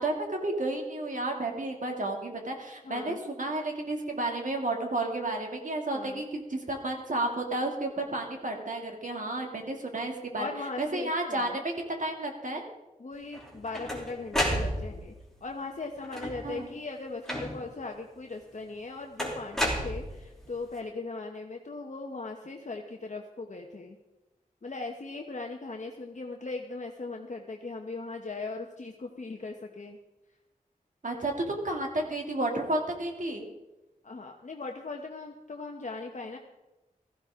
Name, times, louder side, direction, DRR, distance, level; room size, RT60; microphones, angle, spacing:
voice 1, 0.0-10.5 10.8-12.6 16.4-16.7 31.0-33.4, right 2 dB, 60° right, 1 dB, 2.5 m, -32 dB
voice 2, 2.8-3.2 5.9-6.2 10.4-11.6 13.0-15.1 15.4-24.0 24.6-30.0 34.0-36.4, left 3 dB, 55° left, 2 dB, 1.0 m, -39 dB
sound 1, 13.3-15.2 16.0-16.6 17.3-17.8 19.2-20.5, equal, 5° left, 3.1 m, -31 dB
16.5 x 14.5 x 3.7 m, 1.0 s
wide cardioid pair, 85°, 15 cm